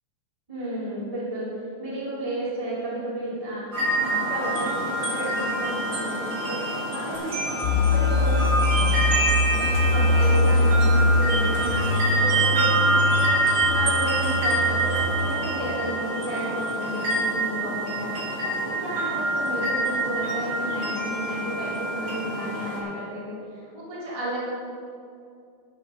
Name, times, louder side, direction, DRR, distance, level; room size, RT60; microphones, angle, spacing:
voice 1, 0.5-1.5 1.8-7.4 7.9-13.3 13.7-18.2 18.4-24.4, right 1 dB, 10° right, -9 dB, 2.3 m, -33 dB
sound 1, 3.7-22.8, right 1 dB, 55° right, 2.9 m, -26 dB
sound 2, 7.6-15.1, left 2 dB, 80° left, 3.1 m, -23 dB
11.0 x 7.5 x 6.2 m, 2.4 s
omnidirectional pair, 3.5 m